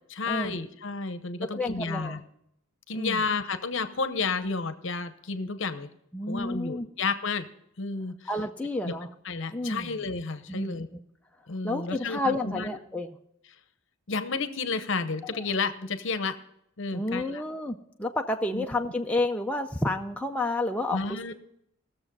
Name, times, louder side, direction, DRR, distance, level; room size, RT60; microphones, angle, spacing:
voice 1, 0.1-2.2 2.9-5.9 6.3-7.5 7.8-8.3 8.8-8.9 9.2-10.9 11.5-12.8 14.1-16.4 16.8-17.4 18.5-18.6 20.9-21.3, left 4 dB, 60° left, 11 dB, 0.8 m, -31 dB
voice 2, 1.4-2.2 2.9-3.2 6.1-6.9 8.3-9.1 9.5-9.9 10.5-10.8 11.6-13.2 15.3-15.5 16.9-21.3, left 2 dB, 5° left, 2 dB, 0.5 m, -30 dB
17.5 x 7.0 x 5.3 m, 0.75 s
head